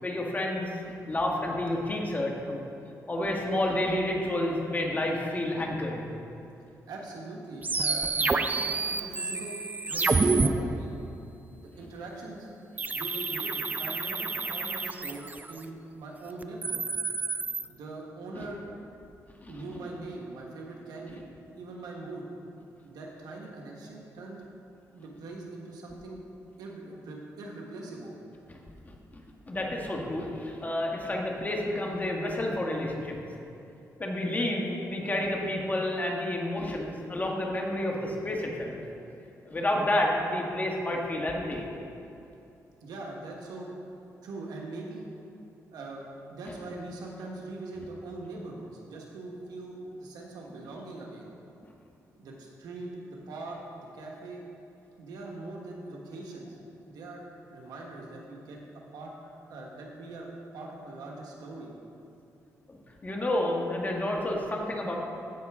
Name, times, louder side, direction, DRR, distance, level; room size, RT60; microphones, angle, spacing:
voice 1, 0.0-2.6 3.1-6.0 18.3-18.4 19.4-19.6 28.5-28.6 28.9-29.0 29.5-33.2 34.0-38.8 39.4-41.6 62.7-65.0, left 1 dB, 25° left, -1 dB, 1.5 m, -30 dB
voice 2, 6.9-9.6 9.8-10.9 11.6-16.9 17.7-18.6 19.5-21.2 21.6-22.3 22.8-24.4 24.9-26.2 26.6-28.1 42.8-43.7 44.2-45.1 45.7-46.0 46.3-51.3 52.2-54.4 55.0-56.6 56.9-57.2 57.5-58.6 58.9-59.1 59.5-60.3 60.5-61.7, right 2 dB, 85° right, -1 dB, 1.4 m, -41 dB
sound 1, 7.6-10.5 12.8-15.6 16.4-17.6, right 3 dB, 25° right, 0.4 m, -28 dB
15.0 x 5.7 x 3.6 m, 2.7 s
cardioid pair, 85°, 7 cm